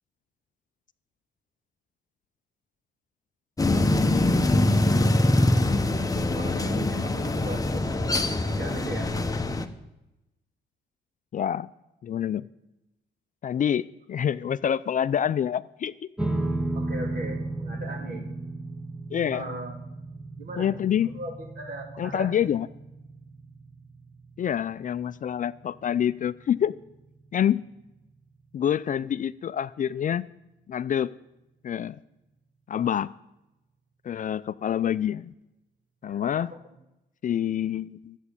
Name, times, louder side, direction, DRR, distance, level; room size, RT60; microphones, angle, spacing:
sound 1, 3.6-9.7, left 1 dB, 20° left, 1.0 m, -23 dB
voice 1, 6.3-7.8 8.4-9.1 16.7-18.2 19.3-19.8 20.4-20.7 21.0-22.4 36.0-36.6, right 2 dB, 50° right, 1 dB, 3.0 m, -38 dB
voice 2, 11.3-11.7 12.0-12.4 13.4-15.9 19.1-19.4 20.6-21.2 22.0-22.7 24.4-26.7 27.3-27.6 28.5-30.3 30.7-31.1 31.6-32.0 32.7-33.1 34.0-35.3 36.0-36.5 37.2-38.2, left 9 dB, 40° left, 15 dB, 0.4 m, -27 dB
sound 2, 16.2-28.7, right 2 dB, 5° right, 1.1 m, -36 dB
11.0 x 8.2 x 8.2 m, 0.93 s
cardioid pair, 90°, 20 cm